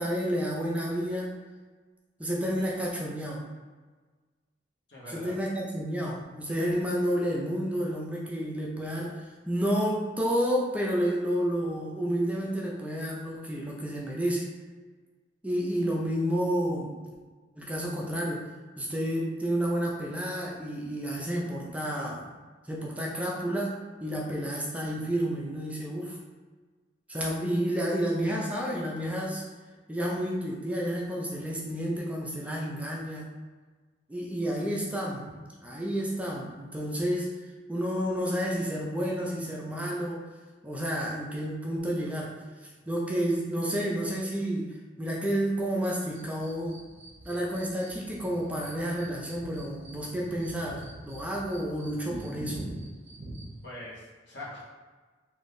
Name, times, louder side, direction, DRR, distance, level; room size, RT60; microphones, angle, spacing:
voice 1, 0.0-1.3 2.2-3.4 5.1-14.5 15.4-17.0 17.6-18.5 18.8-22.4 22.6-26.2 27.1-29.4 29.9-33.3 34.1-37.3 37.7-40.3 40.6-42.3 42.9-46.8 47.2-52.7, equal, 10° right, -3 dB, 0.4 m, -30 dB
voice 2, 4.9-5.4 53.6-54.6, left 1 dB, 70° left, -6 dB, 1.0 m, -42 dB
sound 1, 46.1-53.6, right 1 dB, 35° right, 0.8 m, -44 dB
3.4 x 2.6 x 2.6 m, 1.4 s
head